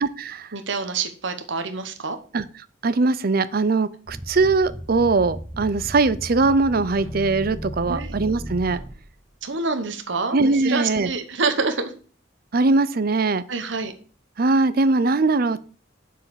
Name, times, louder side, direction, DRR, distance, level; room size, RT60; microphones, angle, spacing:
voice 1, 0.0-0.5 2.3-2.4 2.8-8.8 10.3-11.1 12.5-13.4 14.4-15.6, right 3 dB, 50° right, 16 dB, 0.5 m, -21 dB
voice 2, 0.5-2.2 7.9-8.2 9.4-11.9 13.5-13.9, right 4 dB, 65° right, 7 dB, 1.0 m, -27 dB
sound 1, 4.1-9.3, equal, 10° right, 1.9 m, -35 dB
7.4 x 4.7 x 7.0 m, 0.40 s
head